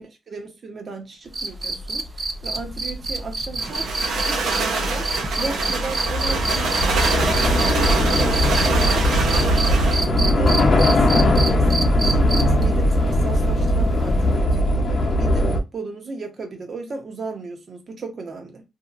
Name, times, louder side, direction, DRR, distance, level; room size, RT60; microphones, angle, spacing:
voice 1, 0.0-9.4 9.6-18.6, right 4 dB, 40° right, 0.8 m, -35 dB
sound 1, 1.3-8.9 9.3-12.6 14.3-14.4, right 3 dB, 20° right, 0.3 m, -27 dB
Train / Subway metro underground, 2.2-2.3 2.6-15.6, left 1 dB, 40° left, 0.7 m, -20 dB
sound 2, 3.6-10.1, right 4 dB, 80° right, 0.8 m, -25 dB
2.7 x 2.7 x 2.5 m
wide cardioid pair, 145°, 0 cm